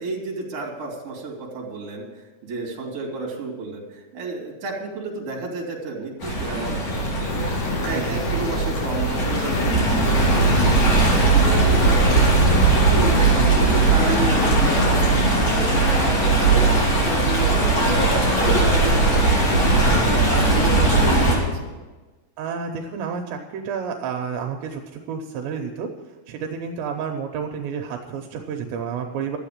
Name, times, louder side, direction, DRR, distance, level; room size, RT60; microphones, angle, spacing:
voice 1, 0.0-7.5 7.8-11.2 11.4-12.4 12.7-16.1 16.4-19.6 19.9-21.8, right 3 dB, 35° right, -1 dB, 3.5 m, -31 dB
sound 1, 6.2-13.4 14.3-15.4, left 11 dB, 80° left, 2.9 m, -30 dB
Stream, 6.2-21.4, right 2 dB, 40° left, 3.7 m, -19 dB
voice 2, 7.9-8.4 12.2-12.5 13.4-13.5 22.4-25.9 26.3-29.4, right 6 dB, 80° right, 3 dB, 3.1 m, -30 dB
13.0 x 8.2 x 8.7 m, 1.2 s
omnidirectional pair, 5.2 m